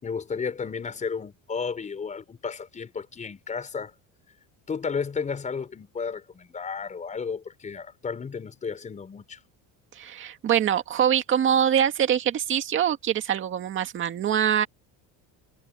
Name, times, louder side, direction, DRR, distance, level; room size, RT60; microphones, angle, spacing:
voice 1, 0.0-3.9 4.7-9.4, left 5 dB, 20° left, 5.8 m, -33 dB
voice 2, 9.9-14.7, right 9 dB, 30° right, 2.1 m, -24 dB
cardioid pair, 175°, 37 cm